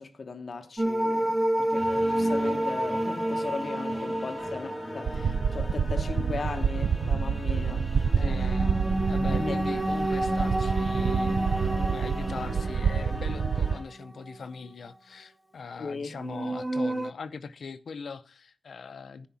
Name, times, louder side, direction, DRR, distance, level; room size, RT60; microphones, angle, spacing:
voice 1, 0.0-7.8 8.2-8.8 9.3-9.6 15.8-16.1, left 4 dB, 45° left, 1.0 m, -37 dB
sound 1, 0.8-6.0 8.2-14.4 14.7-14.8 16.1-17.1, right 1 dB, 10° right, 0.5 m, -29 dB
sound 2, 1.7-13.8, left 1 dB, 10° left, 2.8 m, -40 dB
sound 3, 5.1-13.7, right 6 dB, 80° right, 0.4 m, -28 dB
voice 2, 8.2-19.3, left 5 dB, 70° left, 0.7 m, -41 dB
10.0 x 5.0 x 7.0 m
wide cardioid pair, 170°, 0 cm